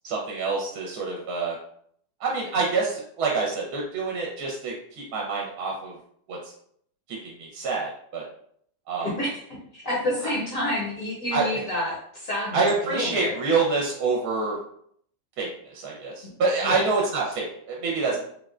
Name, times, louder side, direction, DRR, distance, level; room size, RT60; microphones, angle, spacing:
voice 1, 0.0-1.6 2.2-5.9 6.3-6.4 7.1-8.2 8.9-9.1 10.2-10.3 11.3-11.6 12.5-14.6 15.4-18.2, right 4 dB, 70° right, -2 dB, 1.1 m, -27 dB
voice 2, 9.0-13.3 16.2-16.3 16.6-16.8, left 1 dB, 60° left, -3 dB, 1.0 m, -29 dB
3.6 x 2.1 x 2.4 m, 0.65 s
omnidirectional pair, 1.8 m